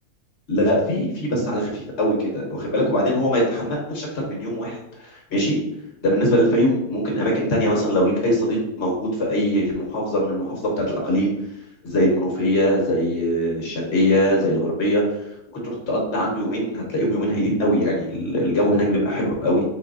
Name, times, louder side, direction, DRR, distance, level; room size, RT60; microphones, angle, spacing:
voice 1, 0.5-5.6 6.0-11.3 11.8-15.0 15.6-19.6, equal, 45° left, -3 dB, 1.5 m, -22 dB
4.1 x 4.0 x 2.7 m, 0.81 s
omnidirectional pair, 1.6 m